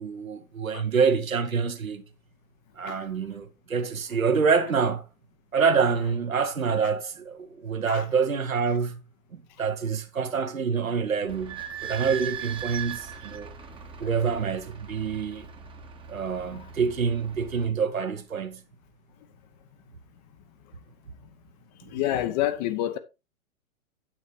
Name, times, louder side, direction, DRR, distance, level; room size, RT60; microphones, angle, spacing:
voice 1, 0.0-2.0 2.8-5.0 5.5-9.0 9.3-13.5 14.0-15.5 16.1-18.6, right 5 dB, 75° right, 1.5 m, -26 dB
Idling / Squeak, 11.3-17.7, right 8 dB, 10° right, 1.1 m, -39 dB
voice 2, 16.4-16.7 21.8-23.0, left 13 dB, 30° left, 0.8 m, -29 dB
9.2 x 8.2 x 3.2 m
figure-of-eight pair, 105°, 41 cm